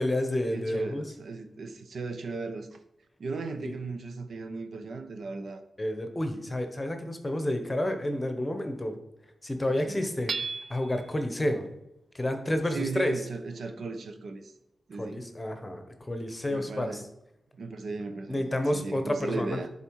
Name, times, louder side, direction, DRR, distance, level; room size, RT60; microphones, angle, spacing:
voice 1, 0.0-1.0 3.6-3.7 5.8-9.0 9.4-10.3 10.7-11.7 12.1-13.1 15.0-17.0 18.3-19.6, left 1 dB, 15° left, 6 dB, 1.0 m, -30 dB
voice 2, 0.5-2.7 3.2-5.6 9.7-10.0 12.7-14.5 14.9-15.2 16.5-17.1 17.6-19.7, right 4 dB, 70° right, 7 dB, 0.9 m, -37 dB
Hammer / Chink clink, 10.3-11.1, right 4 dB, 50° right, 0.3 m, -34 dB
11.0 x 4.3 x 4.7 m, 0.86 s
wide cardioid pair, 125°, 0 cm